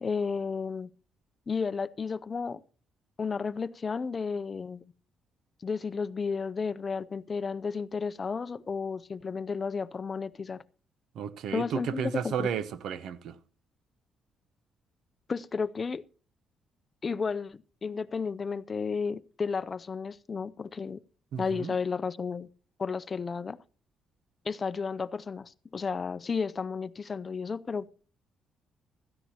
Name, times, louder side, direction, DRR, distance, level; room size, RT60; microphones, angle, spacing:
voice 1, 0.0-0.9 1.5-2.6 3.2-4.8 5.6-10.6 11.5-12.5 15.3-16.0 17.0-21.0 21.4-22.5 22.8-23.6 24.5-27.9, left 5 dB, 35° left, 0.5 m, -32 dB
voice 2, 11.1-13.4 21.3-21.8, right 7 dB, 75° right, 0.8 m, -33 dB
16.0 x 13.5 x 2.9 m
cardioid pair, 90°, 0 cm